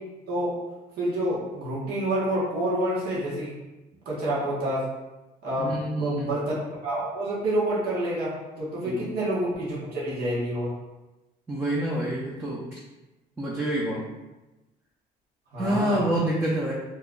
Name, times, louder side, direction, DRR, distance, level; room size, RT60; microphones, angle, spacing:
voice 1, 1.0-3.6 4.0-4.8 5.4-6.5 6.8-10.7 15.5-16.1, right 1 dB, 65° right, -7 dB, 1.3 m, -28 dB
voice 2, 5.6-6.3 8.8-9.0 11.5-12.8 13.4-14.1 15.6-16.7, right 1 dB, 10° right, -5 dB, 0.6 m, -27 dB
3.0 x 2.4 x 3.7 m, 1.0 s
cardioid pair, 110°, 17 cm